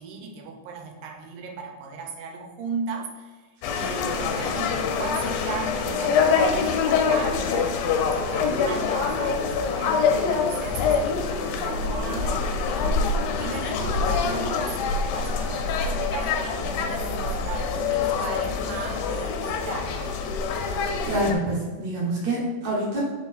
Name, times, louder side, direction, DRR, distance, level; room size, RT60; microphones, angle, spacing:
voice 1, 0.0-3.4 3.7-12.9 13.4-20.2, right 5 dB, 85° right, 2 dB, 2.6 m, -37 dB
sound 1, 3.6-21.3, left 5 dB, 80° left, 1.8 m, -25 dB
voice 2, 21.1-23.0, right 1 dB, 65° right, -4 dB, 2.1 m, -26 dB
5.2 x 4.5 x 4.1 m, 1.4 s
omnidirectional pair, 4.0 m